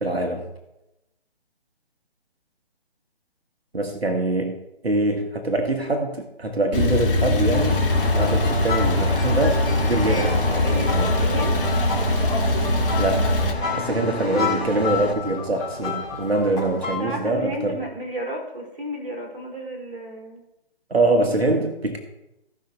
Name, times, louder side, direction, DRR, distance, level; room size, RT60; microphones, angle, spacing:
voice 1, 0.0-0.5 3.7-4.6 4.8-7.8 8.1-10.3 10.7-11.1 13.0-13.4 13.7-17.8 20.9-22.0, right 2 dB, 75° right, 3 dB, 1.9 m, -24 dB
Male speech man speaking / Car / Idling, 6.7-13.5, left 1 dB, 60° left, 1.8 m, -22 dB
Engine, 7.5-15.1, left 3 dB, 80° left, 2.6 m, -32 dB
sound 1, 7.9-17.0, left 4 dB, 10° left, 2.4 m, -30 dB
voice 2, 10.0-11.6 13.7-14.1 16.4-20.4, right 1 dB, 55° right, 0 dB, 3.8 m, -33 dB
16.0 x 6.0 x 4.1 m, 0.91 s
figure-of-eight pair, 140°, 31 cm